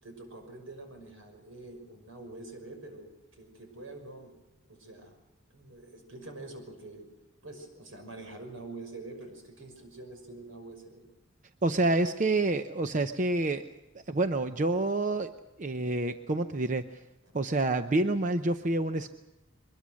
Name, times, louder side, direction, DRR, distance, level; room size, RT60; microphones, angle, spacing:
voice 1, 0.0-4.3 4.7-5.2 5.5-7.1 7.4-11.1, right 2 dB, 80° right, 5 dB, 5.9 m, -46 dB
voice 2, 11.6-13.7 13.9-15.3 15.6-17.0 17.3-19.1, right 2 dB, 40° right, 8 dB, 0.7 m, -28 dB
23.0 x 21.0 x 6.3 m, 1.1 s
head